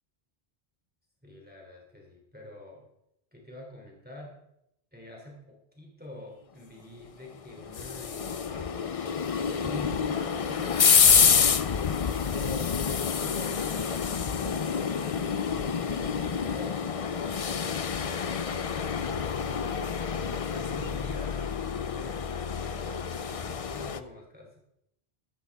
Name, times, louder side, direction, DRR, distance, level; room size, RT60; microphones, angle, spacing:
voice 1, 1.2-2.9 3.3-4.4 4.9-9.0 9.6-11.9 12.3-15.3 15.8-18.6 19.3-24.6, left 1 dB, 10° right, -2 dB, 3.0 m, -46 dB
sound 1, 7.3-24.0, left 6 dB, 40° left, 0.5 m, -27 dB
13.5 x 13.5 x 3.5 m, 0.78 s
omnidirectional pair, 1.1 m